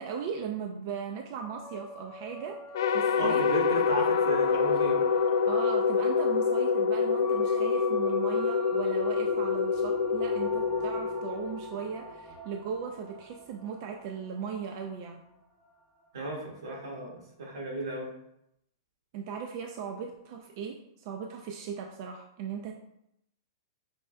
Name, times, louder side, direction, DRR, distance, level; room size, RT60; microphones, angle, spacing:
voice 1, 0.0-2.6 2.9-3.5 5.5-15.2 19.1-22.7, right 6 dB, 45° right, 3 dB, 0.3 m, -38 dB
sound 1, 1.4-16.1, equal, 5° left, 0.7 m, -45 dB
sound 2, 2.7-12.1, left 5 dB, 75° left, 0.3 m, -26 dB
voice 2, 3.1-5.0 16.1-18.1, right 1 dB, 85° right, -1 dB, 1.4 m, -34 dB
5.4 x 3.3 x 2.2 m, 0.79 s
hypercardioid pair, 150°, 2 cm